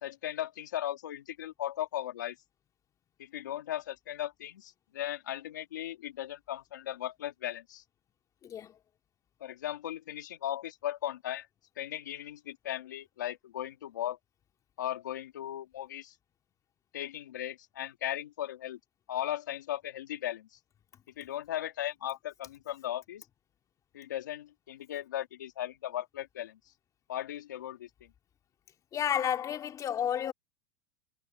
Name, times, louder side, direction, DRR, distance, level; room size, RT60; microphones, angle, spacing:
voice 1, 0.0-2.4 3.2-7.8 9.4-11.5 11.8-14.2 14.8-16.1 16.9-18.8 19.1-20.5 21.2-23.2 23.9-26.6 27.1-28.1, left 12 dB, 90° left, 2.8 m, -37 dB
voice 2, 8.4-8.8 28.9-30.3, left 9 dB, 35° left, 2.9 m, -31 dB
hypercardioid pair, 105°, 10 cm